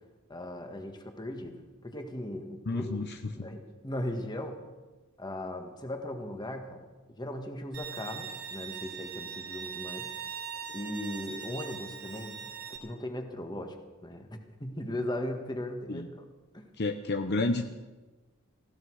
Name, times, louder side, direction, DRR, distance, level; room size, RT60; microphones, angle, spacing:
voice 1, 0.3-3.0 3.3-4.6 5.2-6.9 7.2-10.1 10.7-13.8 14.0-16.2 16.5-16.7, left 1 dB, 20° left, 5 dB, 1.7 m, -38 dB
voice 2, 2.7-3.3 15.9-16.1 16.8-17.7, left 2 dB, 55° left, 7 dB, 0.8 m, -30 dB
Bowed string instrument, 7.7-12.8, right 7 dB, 60° right, 3.1 m, -41 dB
18.5 x 16.0 x 4.8 m, 1.2 s
head